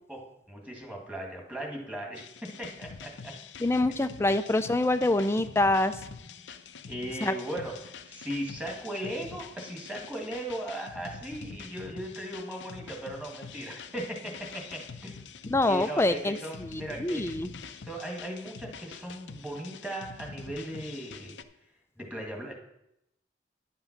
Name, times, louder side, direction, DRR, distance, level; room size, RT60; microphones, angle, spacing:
voice 1, 0.1-3.4 3.9-4.1 5.0-5.1 6.9-15.2 15.7-17.4 17.9-21.4 22.0-22.5, right 1 dB, 10° right, 0 dB, 1.9 m, -38 dB
sound 1, 2.1-21.4, left 5 dB, 85° left, 0.6 m, -45 dB
voice 2, 3.6-5.9 7.2-7.3 15.5-17.5, left 2 dB, 15° left, 10 dB, 0.4 m, -26 dB
10.5 x 5.6 x 5.9 m, 0.82 s
head